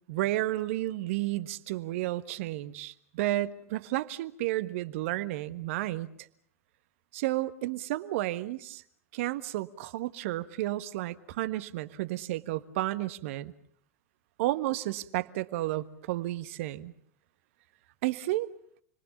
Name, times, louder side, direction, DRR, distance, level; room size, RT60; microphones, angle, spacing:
voice 1, 0.1-6.1 7.1-8.8 9.1-13.5 14.4-16.9 18.0-18.5, right 16 dB, 60° right, 12 dB, 1.4 m, -32 dB
30.0 x 22.5 x 7.2 m, 0.63 s
figure-of-eight pair, 90°, 8 cm